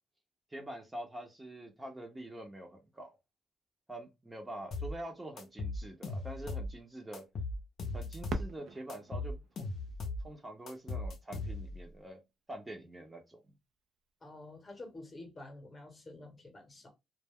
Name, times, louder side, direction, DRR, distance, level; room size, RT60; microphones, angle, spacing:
voice 1, 0.5-3.1 3.9-7.2 7.9-9.4 10.2-12.2 12.5-13.4, right 1 dB, 15° right, 0.6 m, -45 dB
sound 1, 4.7-5.0 5.4-6.7 7.1-8.5 8.9-10.3 10.7-11.8, left 2 dB, 60° left, 0.6 m, -38 dB
Fireworks, 8.3-11.0 11.7-11.8 12.5-13.0 14.9-15.0, right 3 dB, 70° right, 0.4 m, -44 dB
voice 2, 14.2-16.9, left 2 dB, 30° left, 0.9 m, -49 dB
2.2 x 2.0 x 3.4 m
cardioid pair, 90°, 0 cm